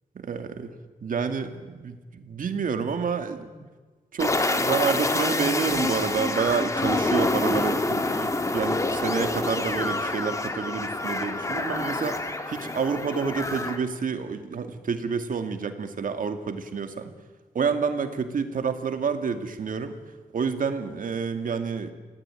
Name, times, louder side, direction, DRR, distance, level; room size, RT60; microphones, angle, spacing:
voice 1, 0.2-0.7 1.0-3.7 4.1-17.1 17.5-20.0 20.3-21.9, right 5 dB, 70° right, 7 dB, 2.4 m, -29 dB
sound 1, 4.2-13.8, left 2 dB, 20° left, 1.9 m, -27 dB
29.0 x 18.0 x 9.2 m, 1.3 s
wide cardioid pair, 165°, 15 cm